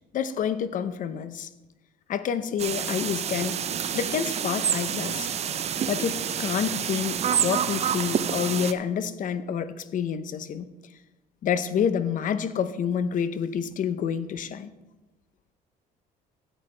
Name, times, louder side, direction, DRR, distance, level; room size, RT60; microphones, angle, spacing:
voice 1, 0.1-1.5 2.1-3.6 3.9-5.3 5.9-10.7 11.4-14.7, left 8 dB, 50° left, 0.7 m, -28 dB
sound 1, 2.6-8.7, right 8 dB, 40° right, 0.5 m, -28 dB
14.0 x 8.3 x 3.3 m
cardioid pair, 110°, 17 cm